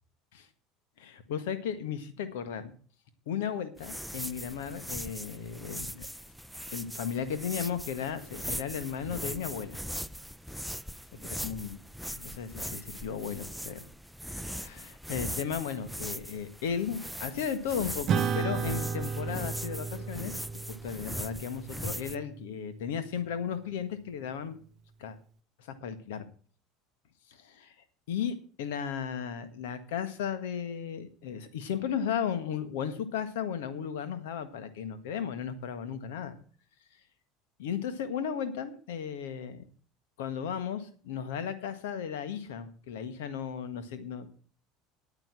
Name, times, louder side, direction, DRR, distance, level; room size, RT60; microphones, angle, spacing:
voice 1, 1.0-2.7 3.3-6.1 6.7-9.8 11.4-11.8 12.1-13.8 14.3-20.3 20.8-24.6 25.0-25.2 25.8-26.2 27.3-27.7 28.1-36.4 37.6-39.6 40.2-44.3, left 7 dB, 70° left, 12 dB, 1.6 m, -35 dB
sound 1, 3.8-22.2, equal, ahead, 0.6 m, -40 dB
Acoustic guitar / Strum, 18.1-22.9, right 6 dB, 45° right, 0.7 m, -34 dB
9.7 x 9.2 x 6.1 m, 0.44 s
figure-of-eight pair, 70°, 0 cm